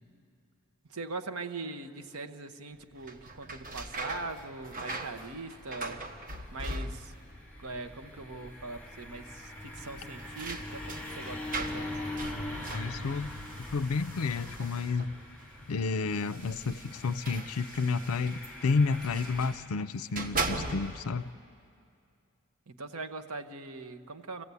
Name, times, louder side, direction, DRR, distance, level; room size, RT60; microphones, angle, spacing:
voice 1, 0.9-6.0 6.5-7.1 7.6-11.9 22.7-24.4, right 3 dB, 75° right, 7 dB, 1.0 m, -41 dB
sound 1, 2.8-19.5, left 1 dB, 5° left, 3.5 m, -43 dB
sound 2, 3.0-7.4 7.6-8.3 8.6-8.7 9.8-15.2 16.1-19.6 20.0-21.2, right 2 dB, 40° right, 1.1 m, -40 dB
voice 2, 12.7-15.1 15.7-21.3, left 4 dB, 70° left, 17 dB, 0.5 m, -31 dB
26.5 x 16.0 x 8.3 m, 2.5 s
head